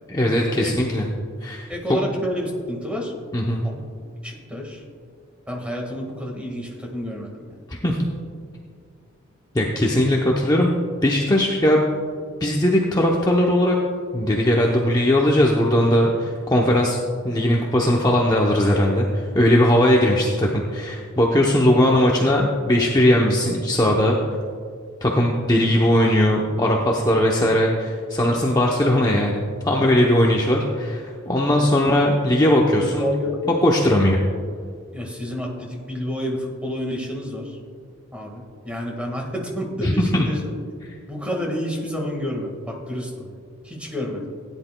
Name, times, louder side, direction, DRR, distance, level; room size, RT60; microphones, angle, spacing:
voice 1, 0.1-1.1 1.4-1.7 3.3-3.7 7.7-8.1 9.5-10.7 11.0-11.8 12.4-13.8 14.1-17.0 17.2-24.2 25.0-33.1 33.6-34.2 39.8-40.3, left 1 dB, 20° left, -2 dB, 0.7 m, -19 dB
voice 2, 1.7-3.1 3.6-3.9 4.2-4.8 5.5-7.4 31.6-31.9 32.8-33.4 34.9-37.5 38.1-40.5 41.1-43.3 43.6-44.3, equal, 5° right, 0 dB, 1.6 m, -29 dB
16.5 x 10.0 x 2.2 m, 2.1 s
head